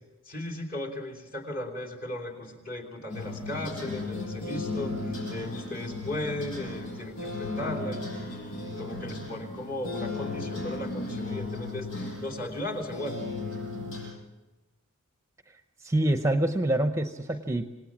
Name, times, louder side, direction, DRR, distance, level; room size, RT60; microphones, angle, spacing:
voice 1, 0.2-13.2, left 1 dB, 45° left, 0 dB, 3.1 m, -36 dB
sound 1, 3.1-14.1, left 2 dB, 90° left, 6.8 m, -35 dB
voice 2, 15.8-17.7, right 1 dB, 15° right, 7 dB, 0.8 m, -26 dB
27.0 x 19.0 x 7.4 m, 1.1 s
head